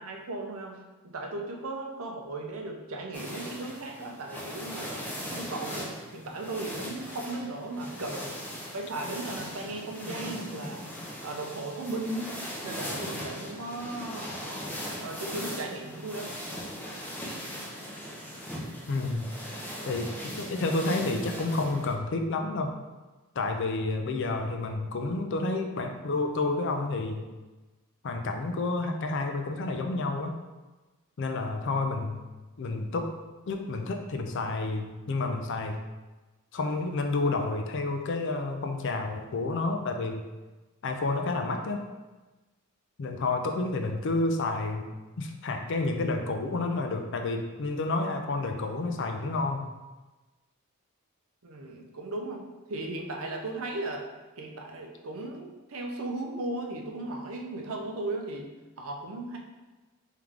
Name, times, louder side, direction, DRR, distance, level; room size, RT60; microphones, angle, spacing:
voice 1, 0.0-5.0 5.3-8.3 8.7-10.8 11.2-12.3 12.6-14.4 15.0-16.3 51.4-54.1 54.4-58.5 58.8-59.4, right 2 dB, 65° right, 1 dB, 0.6 m, -36 dB
sound 1, 3.1-21.9, equal, 10° left, 0.6 m, -39 dB
voice 2, 18.9-19.3 19.9-22.7 23.4-27.3 28.0-30.3 31.2-32.2 32.6-33.1 33.5-35.8 36.5-40.2 40.8-41.8 43.0-44.8 45.2-49.7, left 3 dB, 55° left, 4 dB, 0.4 m, -30 dB
3.6 x 3.3 x 3.5 m, 1.2 s
head